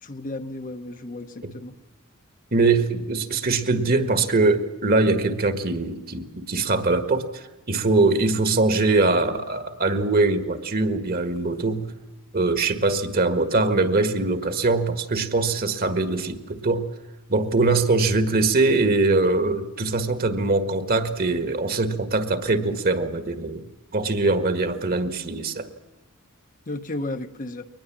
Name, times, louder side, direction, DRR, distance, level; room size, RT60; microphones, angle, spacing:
voice 1, 0.0-1.7 26.7-27.6, left 2 dB, 40° left, 7 dB, 1.0 m, -33 dB
voice 2, 2.5-11.9 12.3-16.9 17.3-23.7 23.9-25.7, right 3 dB, 45° right, 9 dB, 1.7 m, -22 dB
23.0 x 19.5 x 7.5 m, 1.0 s
head